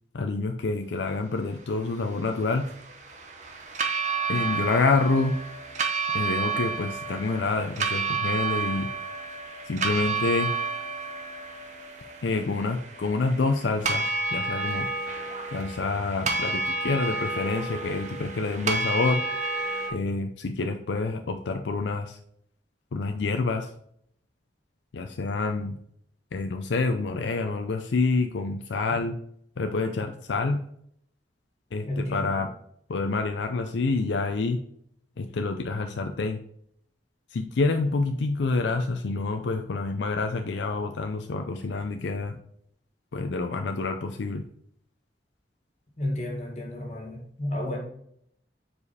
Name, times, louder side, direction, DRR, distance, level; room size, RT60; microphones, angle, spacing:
voice 1, 0.1-2.7 4.3-5.4 6.1-8.9 9.6-10.5 12.2-14.9 15.5-19.2 19.9-22.2 22.9-23.7 24.9-25.8 26.3-29.2 29.6-30.6 31.7-32.5 32.9-34.6 35.2-36.4 37.3-42.4 43.1-44.4, left 3 dB, 80° left, 5 dB, 0.5 m, -27 dB
sound 1, 1.9-19.9, right 4 dB, 40° right, 0.8 m, -31 dB
voice 2, 31.9-32.4 46.0-47.8, left 1 dB, 40° left, 0 dB, 1.9 m, -32 dB
5.0 x 4.8 x 4.1 m, 0.68 s
head